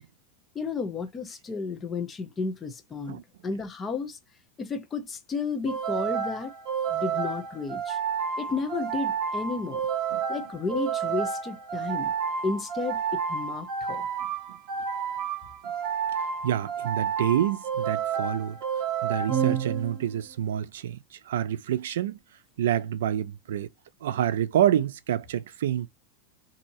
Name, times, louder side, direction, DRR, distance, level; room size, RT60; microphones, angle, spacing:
voice 1, 0.5-4.2 4.6-6.5 6.9-8.0 8.4-9.8 10.3-12.1 12.4-14.1, left 4 dB, 15° left, 0.6 m, -32 dB
sound 1, 5.7-20.2, right 7 dB, 40° right, 1.0 m, -30 dB
voice 2, 16.4-18.6 19.0-22.2 22.6-23.7 24.0-25.9, right 11 dB, 85° right, 0.4 m, -27 dB
4.2 x 2.7 x 2.7 m
supercardioid pair, 175°, 0 cm